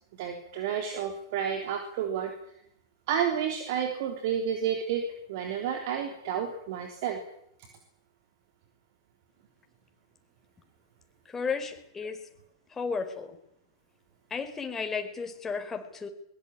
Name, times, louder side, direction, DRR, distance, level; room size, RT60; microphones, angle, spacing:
voice 1, 0.1-2.3 3.1-7.2, right 8 dB, 50° right, 5 dB, 3.5 m, -31 dB
voice 2, 11.3-12.2 12.7-13.4 14.3-16.1, left 5 dB, 15° left, 5 dB, 4.6 m, -33 dB
22.0 x 22.0 x 9.0 m, 0.73 s
figure-of-eight pair, 100°, 2 cm